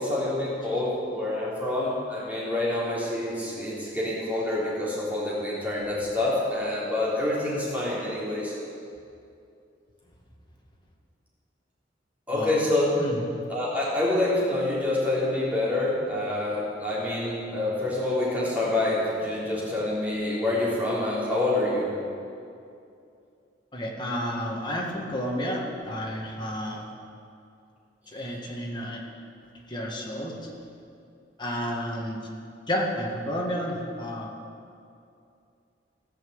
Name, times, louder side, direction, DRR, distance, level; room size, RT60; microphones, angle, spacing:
voice 1, 0.0-8.6 12.3-13.0 13.5-21.9, left 2 dB, 10° right, -8 dB, 3.5 m, -27 dB
voice 2, 23.7-26.8 28.1-29.0 29.7-30.5 31.4-32.2 32.7-34.3, equal, 25° left, -2 dB, 1.7 m, -31 dB
16.5 x 5.9 x 7.9 m, 2.5 s
head